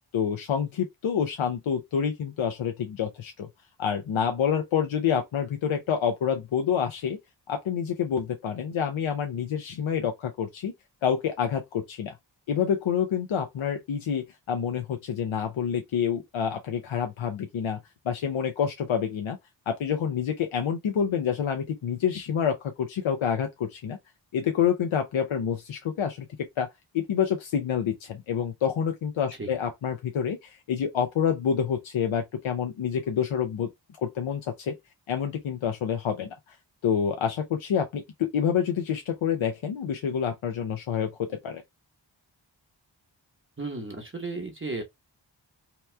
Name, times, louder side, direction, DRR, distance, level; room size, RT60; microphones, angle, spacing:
voice 1, 0.1-3.5 3.8-7.2 7.5-10.7 11.0-12.1 12.5-17.8 18.0-19.4 19.7-24.0 24.3-26.3 26.6-26.7 26.9-33.7 34.0-34.8 35.1-36.6 36.8-41.6, left 8 dB, 80° left, 0.6 m, -27 dB
voice 2, 43.6-44.8, right 3 dB, 25° right, 1.0 m, -34 dB
2.9 x 2.3 x 3.2 m
wide cardioid pair, 95°, 46 cm